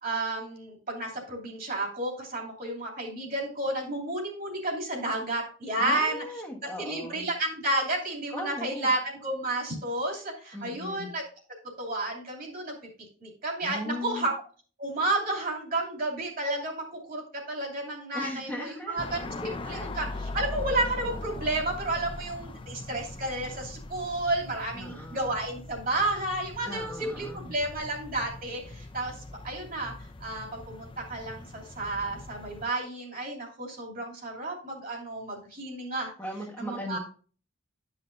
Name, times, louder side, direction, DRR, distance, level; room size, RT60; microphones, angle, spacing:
voice 1, 0.0-6.2 6.8-11.2 11.8-12.7 13.2-14.4 14.8-17.2 17.5-20.0 20.3-29.9 30.2-36.1 36.6-37.0, right 2 dB, 45° right, -1 dB, 2.8 m, -31 dB
voice 2, 5.8-7.3 8.3-8.9 10.5-11.1 13.6-14.3 18.1-19.0 19.4-19.9 24.7-25.3 26.6-27.5 36.2-37.0, left 1 dB, 10° left, -3 dB, 1.2 m, -38 dB
sound 1, 19.0-32.7, left 2 dB, 25° left, 0.5 m, -41 dB
11.5 x 5.8 x 2.6 m, 0.41 s
head